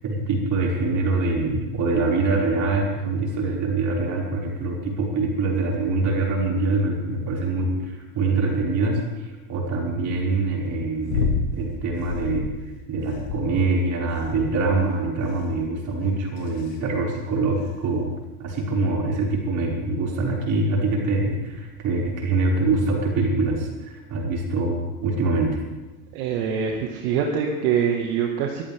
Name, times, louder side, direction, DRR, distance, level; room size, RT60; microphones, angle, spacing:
voice 1, 0.0-12.5 12.9-18.1 18.4-25.6, right 3 dB, 40° right, -3 dB, 5.8 m, -24 dB
sound 1, 11.1-11.5 12.0-12.6 13.1-13.7 14.2-14.7 15.3-15.7 16.4-16.7 17.7-17.8, left 6 dB, 90° left, 2.1 m, -28 dB
voice 2, 26.1-28.6, right 7 dB, 65° right, 1 dB, 2.0 m, -24 dB
24.0 x 13.5 x 3.7 m, 1.2 s
supercardioid pair, 125°, 47 cm